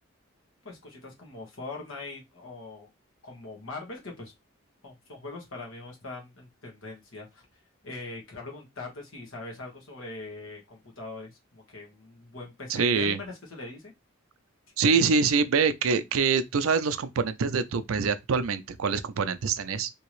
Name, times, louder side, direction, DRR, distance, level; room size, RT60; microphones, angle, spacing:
voice 1, 0.6-2.9 3.2-4.3 4.8-7.4 7.8-13.9, left 3 dB, 75° left, 1.5 m, -41 dB
voice 2, 12.7-13.2 14.8-19.9, right 5 dB, 85° right, 0.5 m, -25 dB
3.4 x 2.9 x 3.0 m
head